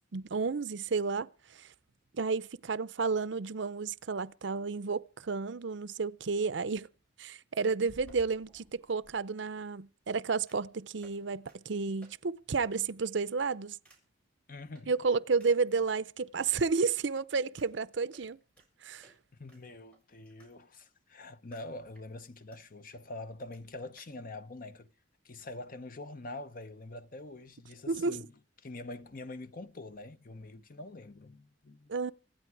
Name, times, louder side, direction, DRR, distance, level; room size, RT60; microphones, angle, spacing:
voice 1, 0.1-1.7 2.1-6.9 7.2-13.8 14.9-18.4 18.8-19.1 27.9-28.2 31.9-32.1, right 4 dB, 70° right, 0.6 m, -31 dB
sound 1, 7.8-9.1 10.5-10.7 11.0-11.2 11.5-11.6 12.0-12.1 12.5-12.6 13.0-13.3 13.8-14.0 14.7-14.8 15.4-16.0 16.5-16.6 17.0-17.1 17.6-17.7 18.1-18.7 19.0-19.2 19.5-20.5 20.8-20.9 21.5-21.7 21.9-22.6 22.9-23.0 23.2-23.3 23.5-23.6 24.0-24.1, right 1 dB, 5° left, 7.0 m, -59 dB
voice 2, 14.5-14.9 19.4-24.9 25.2-28.3 28.6-31.9, left 2 dB, 45° left, 0.8 m, -45 dB
25.5 x 9.2 x 4.7 m
head